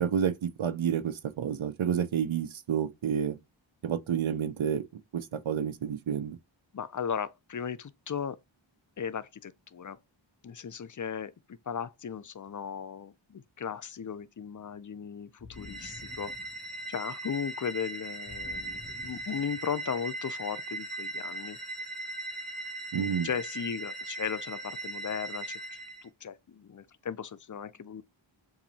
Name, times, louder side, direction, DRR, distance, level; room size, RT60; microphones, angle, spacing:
voice 1, 0.0-3.4 3.8-4.8 5.1-6.4 22.9-23.3, right 8 dB, 80° right, 0.6 m, -29 dB
voice 2, 6.7-8.4 9.0-10.0 10.4-16.3 16.9-21.6 23.0-28.0, left 7 dB, 45° left, 0.4 m, -37 dB
sound 1, 15.4-17.1 18.3-19.9, left 3 dB, 20° left, 1.8 m, -50 dB
sound 2, 15.5-26.0, right 2 dB, ahead, 1.9 m, -39 dB
7.1 x 2.6 x 2.7 m
wide cardioid pair, 50°, 47 cm